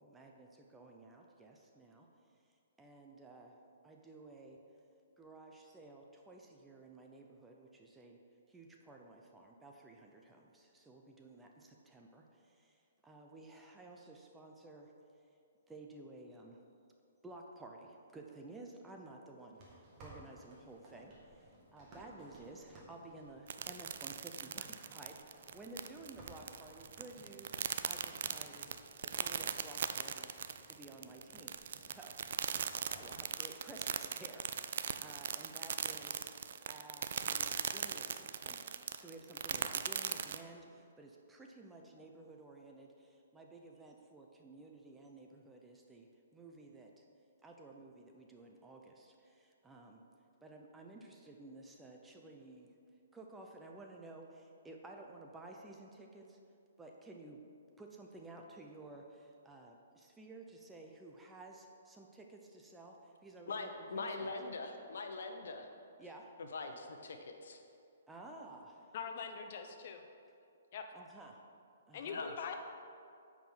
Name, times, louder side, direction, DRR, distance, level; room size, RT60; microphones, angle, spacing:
voice 1, 0.0-2.1 2.8-3.6 3.8-4.6 5.2-8.2 8.5-14.9 15.7-16.6 17.2-28.7 29.1-32.2 32.5-47.0 47.4-50.0 50.4-52.8 53.1-56.4 56.8-57.4 57.8-64.4 66.0-66.4 68.1-68.9 70.9-71.4 71.9-72.2, right 2 dB, 10° right, 1 dB, 0.7 m, -54 dB
sound 1, 19.5-33.2, right 1 dB, 25° right, 2.0 m, -59 dB
sound 2, 23.5-40.4, right 8 dB, 60° right, 0.4 m, -39 dB
voice 2, 63.5-65.7 66.5-67.6 72.1-72.5, left 3 dB, 75° left, 5 dB, 1.0 m, -42 dB
voice 3, 68.9-70.0 70.7-70.8 71.9-72.5, left 6 dB, 45° left, 5 dB, 0.9 m, -43 dB
9.0 x 5.0 x 5.7 m, 2.4 s
hypercardioid pair, 155°, 0 cm